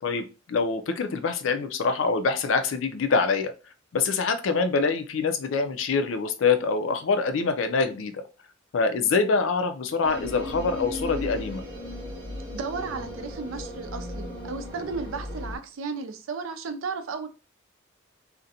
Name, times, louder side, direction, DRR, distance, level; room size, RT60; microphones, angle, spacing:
voice 1, 0.0-3.5 3.9-8.2 8.7-11.6, left 4 dB, 70° left, 8 dB, 0.4 m, -25 dB
sound 1, 10.0-15.6, left 1 dB, 25° right, 0.7 m, -36 dB
voice 2, 12.5-17.3, right 4 dB, 90° right, 9 dB, 0.4 m, -34 dB
2.5 x 2.1 x 2.7 m, 0.31 s
head